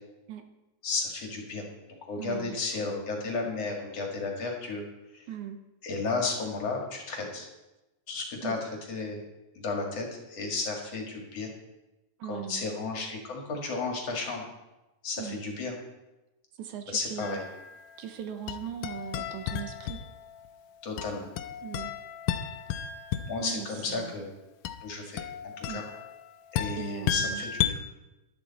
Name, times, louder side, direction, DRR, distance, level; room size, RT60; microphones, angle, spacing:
voice 1, 0.8-1.7 2.1-4.8 5.1-5.2 5.8-7.5 8.1-9.3 9.6-11.5 12.2-14.4 15.0-15.7 16.9-17.4 20.8-21.3 23.3-24.3 24.8-25.9 26.5-27.7, left 3 dB, 55° left, 0 dB, 2.8 m, -33 dB
voice 2, 2.2-2.9 5.3-5.6 8.4-8.6 12.2-12.7 15.2-15.4 16.6-17.4 18.0-20.0 21.6-21.9 23.4-24.1 25.7-25.8 26.8-27.4, right 9 dB, 75° right, 7 dB, 2.3 m, -39 dB
sound 1, 17.2-18.0 18.5-20.5 21.0-23.6 24.7-27.7, left 9 dB, 85° left, 2.2 m, -34 dB
12.0 x 12.0 x 4.2 m, 1.0 s
omnidirectional pair, 3.6 m